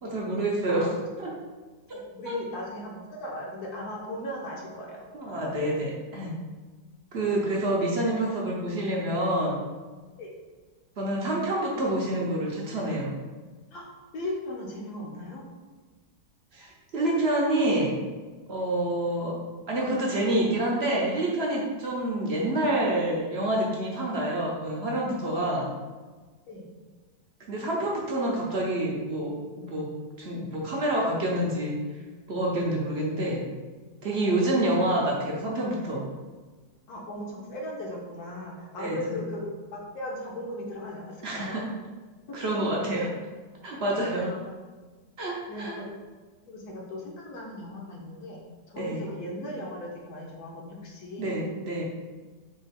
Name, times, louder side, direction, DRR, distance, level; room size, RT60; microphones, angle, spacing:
voice 1, 0.0-0.9 1.2-1.3 2.2-2.3 5.1-6.3 7.1-9.6 11.0-13.1 16.5-18.0 18.5-19.3 19.7-25.7 27.5-32.0 32.3-33.5 34.0-36.0 38.8-39.2 41.2-41.6 42.3-43.1 43.6-44.3 45.2-45.7 48.8-49.1 51.2-51.8, right 1 dB, 55° right, -3 dB, 0.7 m, -27 dB
voice 2, 1.9-5.1 10.2-10.3 13.7-15.4 26.5-26.6 34.4-34.5 36.9-41.6 42.3-42.4 44.2-44.5 45.5-45.9 46.5-51.3, left 1 dB, 70° left, -2 dB, 1.2 m, -37 dB
3.7 x 3.3 x 4.1 m, 1.4 s
omnidirectional pair, 1.8 m